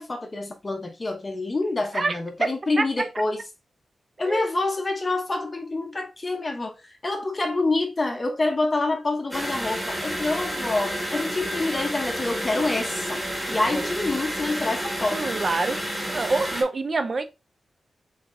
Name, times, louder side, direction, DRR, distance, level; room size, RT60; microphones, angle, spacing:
voice 1, 0.0-3.4 4.2-15.4, left 2 dB, 25° left, 0.7 m, -27 dB
voice 2, 1.9-2.5 2.8-2.9 4.2-4.5 13.7-13.9 15.1-17.2, right 3 dB, 35° right, 0.6 m, -26 dB
sound 1, 9.3-16.6, equal, 5° right, 1.8 m, -30 dB
4.3 x 4.0 x 2.5 m
wide cardioid pair, 165°, 0 cm